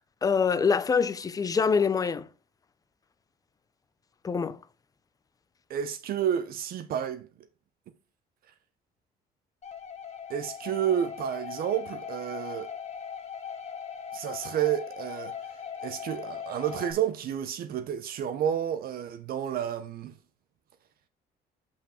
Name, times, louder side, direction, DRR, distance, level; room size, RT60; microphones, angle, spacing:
voice 1, 0.2-2.3 4.2-4.6, left 5 dB, 20° left, 0.4 m, -25 dB
voice 2, 5.7-7.3 10.3-12.7 14.1-15.3 15.8-20.1, right 9 dB, 60° right, 0.7 m, -30 dB
sound 1, 9.6-16.9, left 7 dB, 40° left, 1.1 m, -39 dB
5.7 x 5.0 x 4.2 m
cardioid pair, 110°, 17 cm